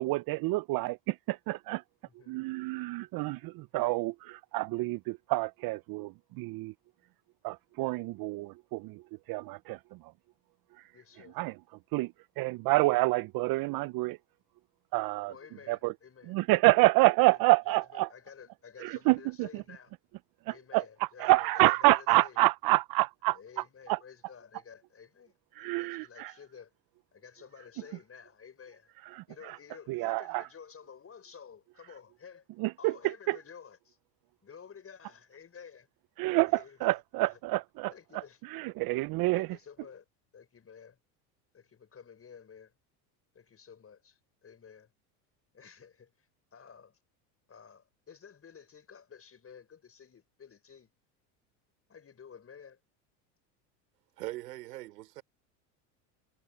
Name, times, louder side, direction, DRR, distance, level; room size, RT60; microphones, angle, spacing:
voice 1, 0.0-1.8 2.3-6.7 7.4-9.0 9.3-9.8 11.4-11.5 11.9-12.1 12.4-14.2 14.9-15.3 15.7-15.9 16.3-18.1 18.8-19.5 20.5-20.8 21.2-23.4 23.9-24.0 25.6-26.3 29.1-29.2 29.9-30.4 32.6-32.9 33.3-33.4 36.2-37.9 38.5-39.5, right 21 dB, 50° right, 0.6 m, -27 dB
voice 2, 2.0-2.5 10.9-11.4 15.3-16.4 17.3-19.9 20.5-22.4 23.3-26.7 27.1-28.9 29.3-32.5 32.8-34.0 34.4-35.9 36.2-37.4 37.9-38.4 39.3-40.0 40.3-41.0 41.5-42.7 43.3-44.9 45.5-47.0 47.5-50.9 51.9-52.8, left 7 dB, 30° left, 6.5 m, -52 dB
voice 3, 54.2-55.2, right 17 dB, 85° right, 3.5 m, -41 dB
supercardioid pair, 90°, 46 cm